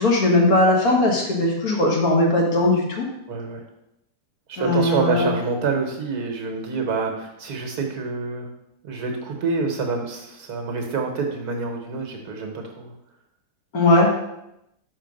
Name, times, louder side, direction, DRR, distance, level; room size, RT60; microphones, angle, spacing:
voice 1, 0.0-3.1 4.6-5.3 13.7-14.1, left 2 dB, 60° left, -1 dB, 1.8 m, -19 dB
voice 2, 3.3-3.6 4.5-8.5 8.8-12.9, right 4 dB, 70° right, 3 dB, 1.5 m, -27 dB
5.9 x 4.3 x 5.2 m, 0.85 s
omnidirectional pair, 1.8 m